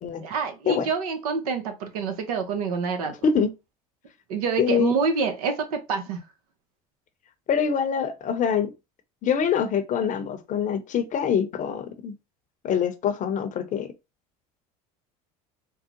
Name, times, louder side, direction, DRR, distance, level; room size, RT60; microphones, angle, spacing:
voice 1, 0.2-3.1 4.3-6.2, right 5 dB, 85° right, 0.7 m, -27 dB
voice 2, 4.6-5.0 7.5-8.7 9.2-12.1 12.6-13.9, left 7 dB, 45° left, 0.7 m, -24 dB
3.6 x 2.0 x 2.9 m
hypercardioid pair, 80°, 19 cm